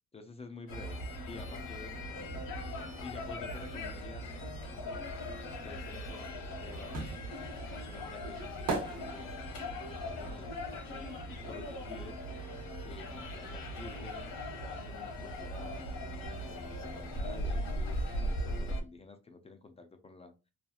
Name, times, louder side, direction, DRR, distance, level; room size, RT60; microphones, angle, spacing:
voice 1, 0.1-1.0 1.3-2.4 2.8-5.1 5.6-7.0 7.8-11.0 11.5-12.2 12.8-20.3, left 3 dB, 20° left, 7 dB, 0.3 m, -50 dB
sound 1, 0.7-18.8, equal, 85° left, 1.1 m, -39 dB
sound 2, 6.1-11.9 12.2-13.8 14.0-14.1, right 3 dB, 85° right, 0.9 m, -40 dB
2.8 x 2.3 x 2.2 m, 0.29 s
cardioid pair, 120°, 33 cm